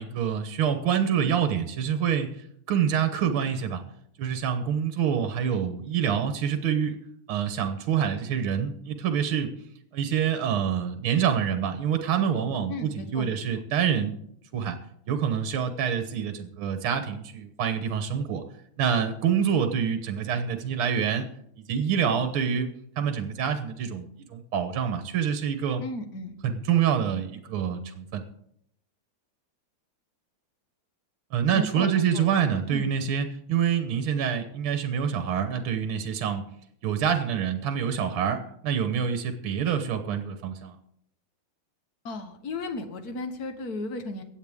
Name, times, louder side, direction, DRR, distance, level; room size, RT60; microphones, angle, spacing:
voice 1, 0.0-2.3 2.7-3.8 4.2-7.0 7.3-9.5 9.9-14.2 14.5-14.8 15.1-18.4 18.8-21.3 21.7-22.7 23.0-25.8 26.4-28.2 31.3-36.4 36.8-40.8, right 8 dB, 70° right, 8 dB, 1.9 m, -26 dB
voice 2, 12.7-13.6 25.8-26.3 31.5-32.4 32.7-32.9 42.0-44.2, left 2 dB, 50° left, 7 dB, 1.6 m, -35 dB
23.0 x 8.2 x 3.6 m, 0.71 s
omnidirectional pair, 2.4 m